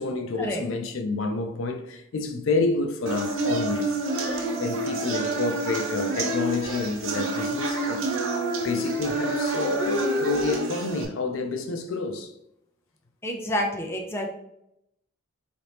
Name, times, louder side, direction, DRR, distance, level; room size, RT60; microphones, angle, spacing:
voice 1, 0.0-3.8 4.6-8.0 8.6-12.3, left 3 dB, 75° left, 0.5 m, -29 dB
sound 1, 3.1-11.0, right 2 dB, 80° right, 0.7 m, -28 dB
voice 2, 13.2-14.3, left 1 dB, 10° left, 0.4 m, -28 dB
4.2 x 2.9 x 3.3 m
head